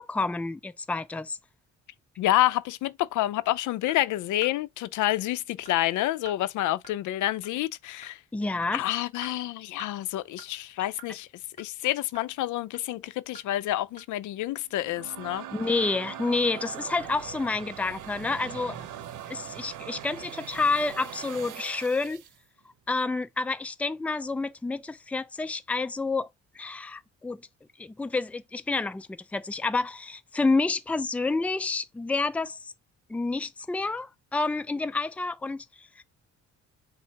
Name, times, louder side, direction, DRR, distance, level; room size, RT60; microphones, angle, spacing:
voice 1, 0.0-1.4 8.3-8.8 15.5-18.8 19.3-22.2 22.9-26.3 26.5-27.4 27.8-32.7 33.1-36.0, left 3 dB, 5° left, 0.4 m, -29 dB
voice 2, 2.2-8.2 8.7-11.3 11.6-15.5, left 14 dB, 75° left, 0.5 m, -28 dB
sound 1, 3.9-4.0 4.4-4.5 5.1-5.2 5.7-5.8 6.3-6.4 6.8-6.9 7.4-7.5 8.0-8.1 8.6-8.7 9.2-9.3 9.8-9.9 10.4-10.5 11.0-11.1 11.6-11.7 12.1-12.3 12.7-12.8 13.3-13.4 14.0-14.1, right 2 dB, 25° left, 1.7 m, -46 dB
sound 2, 14.7-22.4, right 10 dB, 80° right, 0.7 m, -41 dB
5.7 x 2.0 x 4.5 m
cardioid pair, 90°, 30 cm